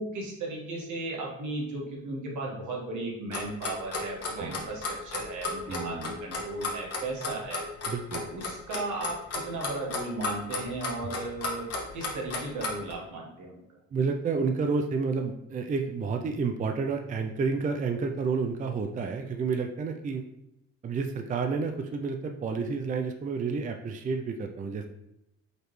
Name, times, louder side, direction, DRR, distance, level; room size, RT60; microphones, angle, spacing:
voice 1, 0.0-7.6 8.1-11.7 11.9-13.6, right 2 dB, 75° right, -2 dB, 1.5 m, -36 dB
Clock, 3.3-12.9, left 3 dB, 50° left, 1.2 m, -33 dB
voice 2, 5.7-6.1 7.9-8.3 13.9-20.2 20.8-24.9, right 4 dB, 25° right, 5 dB, 0.4 m, -30 dB
5.0 x 3.1 x 3.1 m, 0.85 s
cardioid pair, 90°, 30 cm